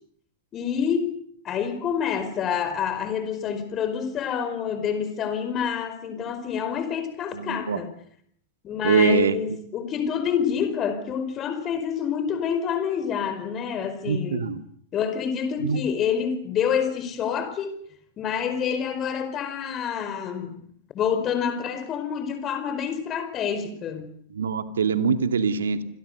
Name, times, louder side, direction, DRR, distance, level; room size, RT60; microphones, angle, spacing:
voice 1, 0.5-1.1 1.4-7.9 8.6-14.5 14.9-17.8 18.2-20.6 20.9-24.1, left 7 dB, 30° left, 9 dB, 4.8 m, -27 dB
voice 2, 7.3-7.8 8.8-9.3 14.1-14.6 15.6-15.8 24.3-25.8, right 6 dB, 70° right, 8 dB, 2.5 m, -23 dB
29.0 x 27.0 x 6.8 m, 0.67 s
figure-of-eight pair, 95°, 0 cm